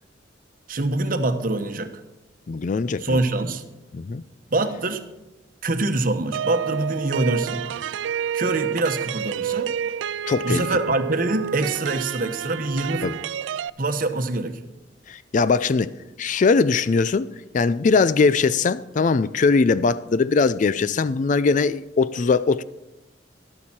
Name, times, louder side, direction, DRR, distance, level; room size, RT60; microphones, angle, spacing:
voice 1, 0.7-2.0 3.0-3.6 4.5-5.0 5.6-7.6 8.3-9.7 10.4-13.1 13.8-14.6, right 2 dB, 50° right, 1.0 m, -24 dB
voice 2, 2.5-3.2 3.9-4.2 10.3-10.7 13.0-13.1 15.1-15.9 16.2-17.3 17.5-22.6, left 4 dB, 45° left, 0.4 m, -20 dB
sound 1, 6.3-13.7, right 8 dB, 90° right, 0.3 m, -29 dB
13.0 x 12.0 x 4.3 m
head